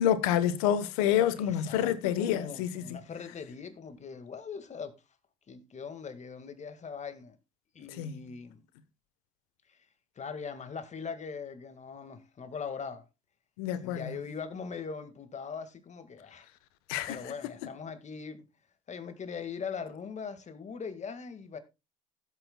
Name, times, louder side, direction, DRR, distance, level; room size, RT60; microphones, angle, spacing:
voice 1, 0.0-2.8 8.0-8.1 13.6-14.1 16.9-17.2, left 10 dB, 80° left, 1.1 m, -28 dB
voice 2, 1.3-4.9 5.5-7.4 7.7-8.6 9.7-9.8 10.2-13.1 13.8-16.5 17.1-18.5 18.9-21.6, left 6 dB, 40° left, 1.9 m, -41 dB
16.0 x 8.4 x 2.3 m
hypercardioid pair, 65°, 18 cm